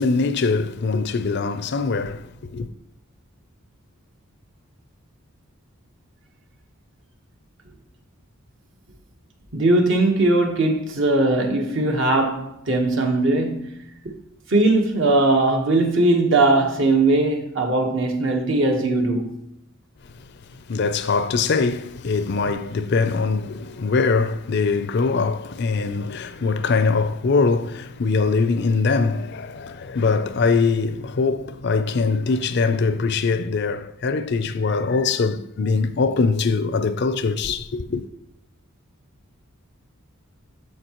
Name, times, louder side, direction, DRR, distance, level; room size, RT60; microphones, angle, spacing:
voice 1, 0.0-2.7 20.1-20.2 20.7-38.0, left 4 dB, 50° left, 0.5 m, -22 dB
voice 2, 9.5-13.8 14.0-14.1 14.5-19.3, right 2 dB, 60° right, 1.3 m, -19 dB
13.0 x 4.8 x 3.0 m
head